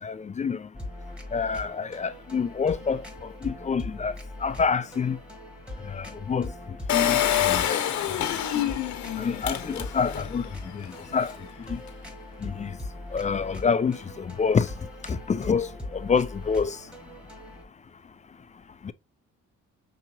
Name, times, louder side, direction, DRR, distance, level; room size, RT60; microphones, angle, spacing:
voice 1, 0.0-0.7 1.3-5.2 5.8-8.2 8.5-8.7 9.2-11.8 12.4-12.8 13.1-14.7 15.0-16.9 18.8-18.9, left 5 dB, 25° left, 0.4 m, -28 dB
sound 1, 0.7-17.6, left 1 dB, 5° right, 1.3 m, -41 dB
Engine, 6.9-10.4 10.8-10.9 11.1-11.2, left 11 dB, 70° left, 0.9 m, -26 dB
5.8 x 2.9 x 2.6 m
cardioid pair, 90°, 30 cm